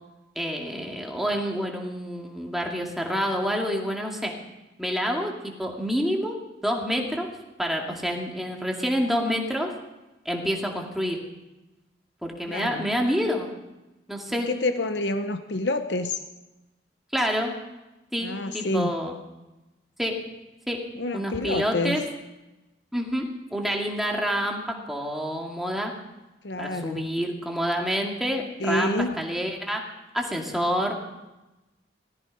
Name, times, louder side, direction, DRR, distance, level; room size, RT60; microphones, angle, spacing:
voice 1, 0.4-4.3 4.8-6.4 6.6-7.3 7.6-9.7 10.3-11.2 12.2-13.5 14.1-14.5 17.1-17.5 18.1-19.2 20.0-20.2 20.7-20.8 21.1-22.0 22.9-25.9 26.6-29.9 30.1-31.0, equal, ahead, 0 dB, 2.2 m, -28 dB
voice 2, 12.5-12.9 14.3-16.2 18.2-18.9 20.9-22.0 26.4-27.1 28.6-29.1, left 2 dB, 80° left, 9 dB, 0.9 m, -28 dB
18.5 x 14.5 x 5.3 m, 1.0 s
head